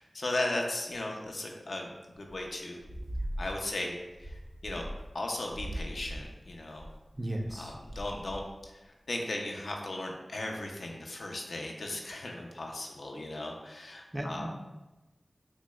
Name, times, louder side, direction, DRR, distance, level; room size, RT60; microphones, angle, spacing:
voice 1, 0.0-2.8 3.4-4.9 5.1-6.9 7.6-8.4 8.7-14.5, left 2 dB, 80° left, 0 dB, 0.5 m, -37 dB
sound 1, 2.2-2.5 2.8-3.7 4.1-5.2 5.5-8.6, equal, 80° right, 0.6 m, -40 dB
voice 2, 7.1-7.8 14.1-14.5, right 1 dB, 20° right, 2 dB, 0.5 m, -35 dB
6.1 x 2.0 x 2.3 m, 1.1 s
cardioid pair, 45°, 0 cm